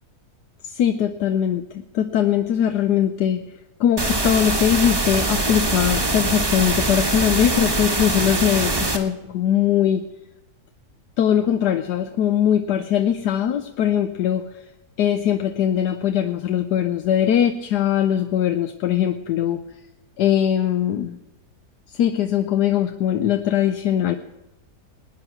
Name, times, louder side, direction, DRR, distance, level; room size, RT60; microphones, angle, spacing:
voice 1, 0.6-3.4 3.8-10.0 11.2-14.5 15.0-19.6 20.2-21.2 21.9-24.2, left 10 dB, 80° left, 7 dB, 1.3 m, -21 dB
sound 1, 4.0-9.0, right 2 dB, 15° right, 1.0 m, -23 dB
19.5 x 9.7 x 5.9 m, 0.94 s
omnidirectional pair, 1.8 m